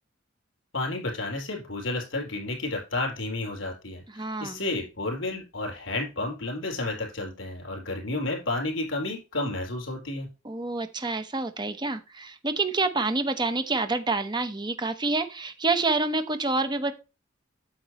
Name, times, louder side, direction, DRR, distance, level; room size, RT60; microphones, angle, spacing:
voice 1, 0.7-10.3, left 2 dB, 80° left, 1 dB, 4.4 m, -31 dB
voice 2, 4.2-4.6 10.4-16.9, right 3 dB, 25° right, 9 dB, 1.1 m, -27 dB
9.2 x 7.7 x 3.1 m, 0.28 s
head